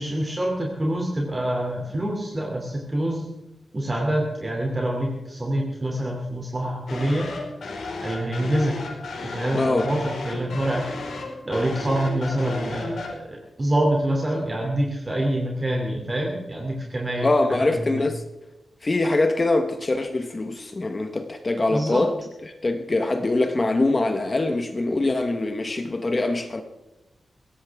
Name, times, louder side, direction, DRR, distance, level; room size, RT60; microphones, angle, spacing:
voice 1, 0.0-3.3 3.7-7.3 8.0-8.7 9.2-10.8 11.4-18.0 21.7-22.0, right 1 dB, 20° right, 3.0 m, -26 dB
sound 1, 6.9-13.1, left 3 dB, 80° left, 4.7 m, -34 dB
voice 2, 9.5-9.9 17.2-18.2 18.8-22.1 22.4-26.6, left 2 dB, 25° left, 1.3 m, -23 dB
21.5 x 17.0 x 3.6 m
wide cardioid pair, 150°, 0 cm